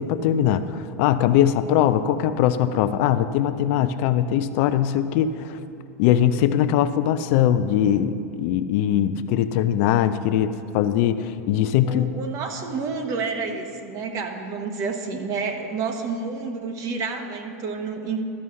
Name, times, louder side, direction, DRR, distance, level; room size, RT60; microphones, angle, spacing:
voice 1, 0.0-5.6 6.0-12.1, left 10 dB, 55° left, 11 dB, 0.4 m, -21 dB
voice 2, 11.8-18.2, right 4 dB, 40° right, 5 dB, 1.1 m, -29 dB
12.5 x 5.5 x 6.3 m, 2.6 s
supercardioid pair, 135°, 9 cm